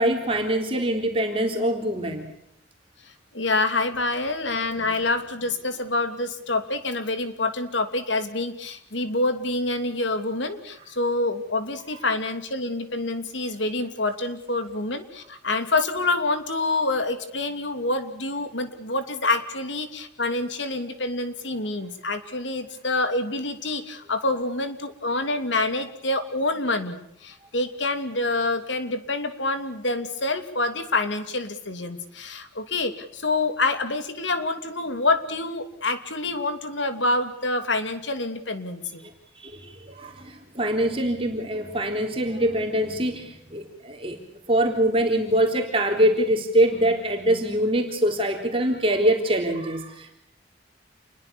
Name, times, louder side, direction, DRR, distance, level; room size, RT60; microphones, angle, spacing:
voice 1, 0.0-2.3 4.8-5.0 39.4-44.2 44.5-50.2, right 1 dB, 30° right, 2 dB, 3.7 m, -24 dB
voice 2, 3.3-39.1, left 2 dB, 75° left, 9 dB, 2.9 m, -27 dB
28.5 x 22.0 x 7.1 m, 0.75 s
head